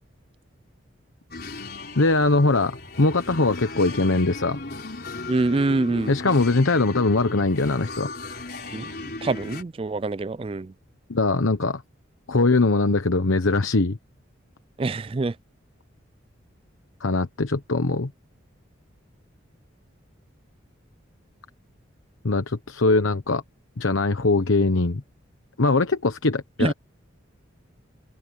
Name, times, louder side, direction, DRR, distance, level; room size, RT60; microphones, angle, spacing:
sound 1, 1.3-9.6, left 2 dB, 50° left, 4.8 m, -36 dB
voice 1, 2.0-4.6 6.1-8.1 11.1-11.8 12.3-14.0 17.0-18.1 22.2-23.4 23.8-25.0 25.6-26.7, left 3 dB, 85° left, 1.1 m, -21 dB
voice 2, 5.3-6.2 8.7-10.7 14.8-15.4 26.6-26.7, right 3 dB, 25° right, 0.3 m, -25 dB
head